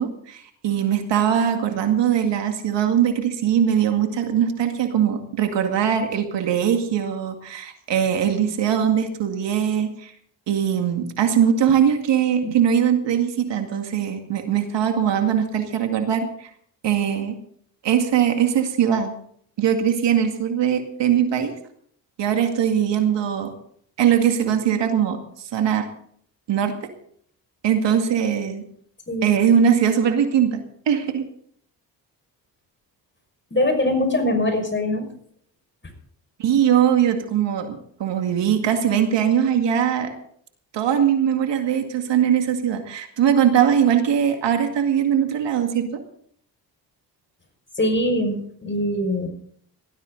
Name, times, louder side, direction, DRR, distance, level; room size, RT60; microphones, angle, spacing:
voice 1, 0.0-10.1 10.5-16.5 16.8-17.4 17.8-19.1 19.6-21.5 22.2-23.5 24.0-25.2 25.5-25.9 26.5-26.8 27.6-28.6 29.2-30.6 30.9-31.2 36.4-40.1 40.7-45.9, right 8 dB, 70° right, 5 dB, 2.2 m, -21 dB
voice 2, 33.5-35.1 47.8-49.3, left 1 dB, 25° left, 5 dB, 5.8 m, -22 dB
18.5 x 13.5 x 4.0 m, 0.64 s
supercardioid pair, 60°, 44 cm